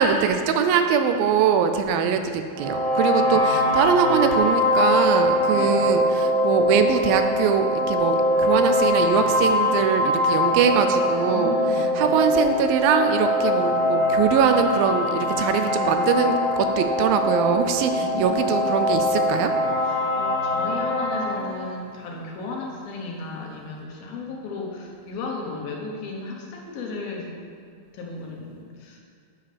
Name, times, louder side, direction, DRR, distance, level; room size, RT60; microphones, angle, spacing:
voice 1, 0.0-19.5, right 7 dB, 80° right, 7 dB, 2.2 m, -22 dB
voice 2, 1.9-2.3 3.2-3.4 5.5-5.8 11.2-12.2 17.9-18.5 19.8-27.4 27.9-29.0, left 3 dB, 75° left, -1 dB, 2.8 m, -35 dB
sound 1, 2.5-21.4, left 1 dB, 35° right, 2.2 m, -22 dB
9.0 x 7.1 x 5.0 m, 2.1 s
omnidirectional pair, 4.4 m